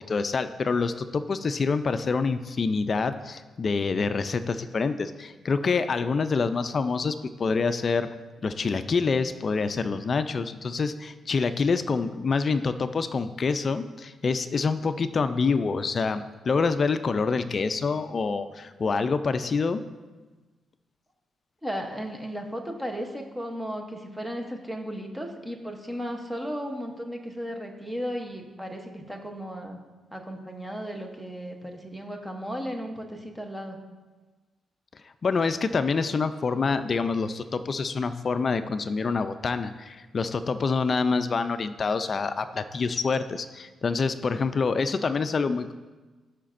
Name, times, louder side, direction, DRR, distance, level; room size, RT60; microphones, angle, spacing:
voice 1, 0.1-8.1 8.4-19.8 35.2-45.7, left 4 dB, 40° left, 11 dB, 0.3 m, -26 dB
voice 2, 21.6-29.8 30.1-33.8, equal, 5° right, 3 dB, 0.8 m, -35 dB
14.0 x 5.8 x 2.5 m, 1.3 s
cardioid pair, 130°, 0 cm